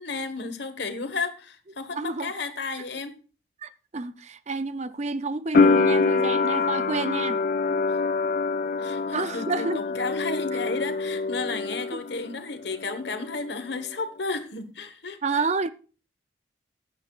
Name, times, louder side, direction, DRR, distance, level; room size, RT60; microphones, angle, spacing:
voice 1, 0.0-3.2 7.9-8.0 8.8-15.2, left 3 dB, 60° left, 1.3 m, -33 dB
voice 2, 1.9-2.3 3.6-7.4 9.1-9.8 11.9-12.0 15.2-15.7, right 3 dB, 35° right, 0.5 m, -29 dB
sound 1, 5.5-12.4 12.6-13.5, left 4 dB, 45° left, 0.4 m, -25 dB
15.5 x 10.0 x 2.4 m
head